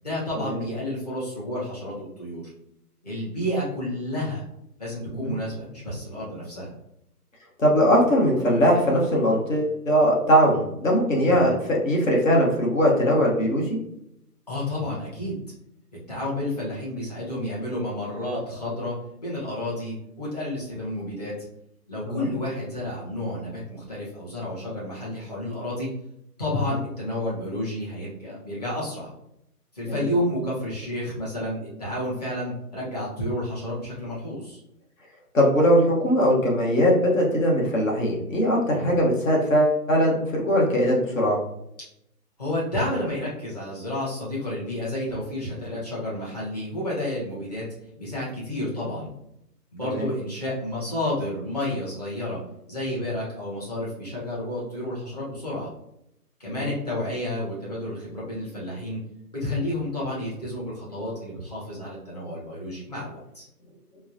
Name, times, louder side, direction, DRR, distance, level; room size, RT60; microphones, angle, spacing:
voice 1, 0.0-2.5 3.0-4.4 4.8-6.7 11.2-11.6 14.5-15.4 16.1-21.3 21.9-25.9 26.4-29.1 29.7-34.6 38.6-39.0 42.4-47.7 48.0-49.1 49.7-52.4 52.7-55.7 56.4-59.0 59.3-63.4, left 1 dB, 25° left, -7 dB, 1.0 m, -30 dB
voice 2, 7.6-13.8 22.1-22.3 29.9-30.1 35.3-41.4 49.8-50.1 56.5-56.7, equal, 55° left, -2 dB, 1.2 m, -21 dB
4.5 x 2.1 x 2.7 m, 0.79 s
hypercardioid pair, 175°, 47 cm